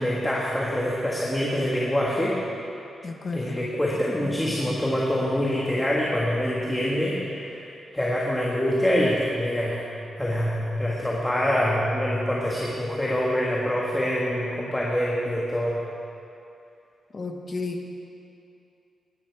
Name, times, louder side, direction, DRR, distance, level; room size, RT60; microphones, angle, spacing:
voice 1, 0.0-2.4 3.3-7.6 7.9-9.8 10.2-15.8, equal, 10° left, -5 dB, 1.6 m, -25 dB
voice 2, 3.0-3.7 17.1-17.9, left 3 dB, 35° left, 3 dB, 1.2 m, -32 dB
19.0 x 10.5 x 4.7 m, 2.7 s
wide cardioid pair, 150°, 0 cm